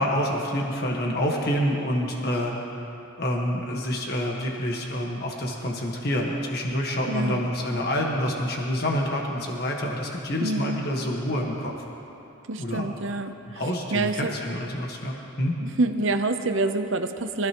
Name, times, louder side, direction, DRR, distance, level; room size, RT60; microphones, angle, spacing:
voice 1, 0.0-2.5 3.2-11.7 12.6-12.9 13.5-15.5, equal, 45° left, -1 dB, 1.5 m, -27 dB
voice 2, 7.1-7.4 10.4-10.8 12.5-13.6 13.9-14.3 15.6-17.5, right 2 dB, 65° right, 8 dB, 0.7 m, -27 dB
24.0 x 15.5 x 3.1 m, 2.9 s
head